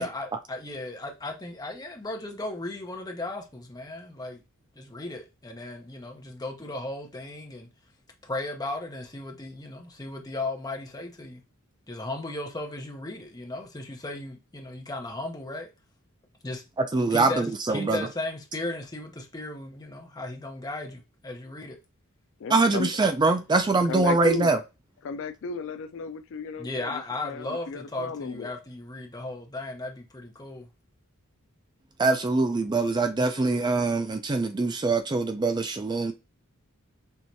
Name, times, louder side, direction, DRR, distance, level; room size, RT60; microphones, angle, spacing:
voice 1, 0.0-4.4 4.8-7.7 8.2-11.4 11.9-15.7 16.4-16.6 17.1-21.8 26.6-30.7, left 2 dB, 20° left, 0.9 m, -36 dB
voice 2, 16.8-18.1 22.5-24.6 32.0-36.1, right 3 dB, 20° right, 0.4 m, -24 dB
voice 3, 22.4-22.9 23.9-24.5 25.0-28.5, left 4 dB, 60° left, 0.4 m, -34 dB
4.5 x 3.2 x 2.7 m
head